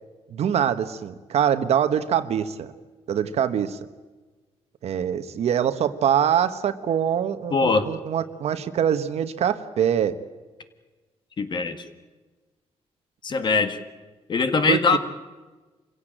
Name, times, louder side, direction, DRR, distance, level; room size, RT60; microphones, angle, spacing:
voice 1, 0.3-2.7 3.1-3.8 4.8-10.2 14.7-15.0, right 9 dB, 70° right, 11 dB, 1.3 m, -24 dB
voice 2, 7.5-7.9 11.4-11.8 13.2-13.8 14.3-15.0, left 4 dB, 45° left, 9 dB, 1.8 m, -21 dB
26.5 x 16.5 x 9.0 m, 1.3 s
cardioid pair, 120°, 11 cm